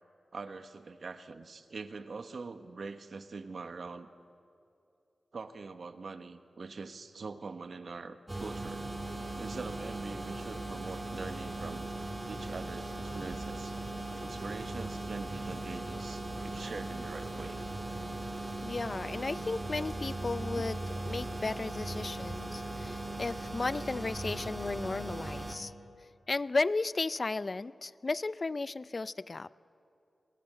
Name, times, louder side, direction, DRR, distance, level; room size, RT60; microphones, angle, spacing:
voice 1, 0.3-4.1 5.3-8.9 9.3-11.9 12.3-13.8 14.2-17.7 20.6-20.7, right 4 dB, 65° right, 10 dB, 1.4 m, -43 dB
sound 1, 8.3-25.6, right 2 dB, 25° right, 2.8 m, -38 dB
voice 2, 18.6-25.7 26.3-29.5, left 3 dB, 45° left, 18 dB, 0.5 m, -34 dB
27.5 x 20.5 x 8.1 m, 2.6 s
cardioid pair, 60°, 0 cm